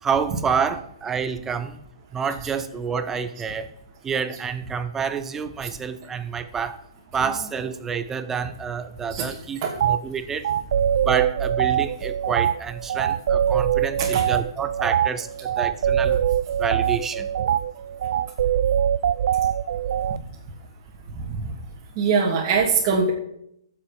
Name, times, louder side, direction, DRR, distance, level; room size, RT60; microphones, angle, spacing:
voice 1, 0.0-1.8 2.1-3.7 4.0-6.8 7.1-10.5 11.0-16.2 16.6-17.3, right 6 dB, 15° right, 11 dB, 0.8 m, -28 dB
sound 1, 9.8-10.0 10.4-20.2, right 9 dB, 60° right, 0.4 m, -23 dB
voice 2, 21.1-21.5 22.0-23.1, right 5 dB, 35° right, -4 dB, 2.8 m, -22 dB
15.5 x 7.5 x 5.3 m, 0.74 s
hypercardioid pair, 145°, 3 cm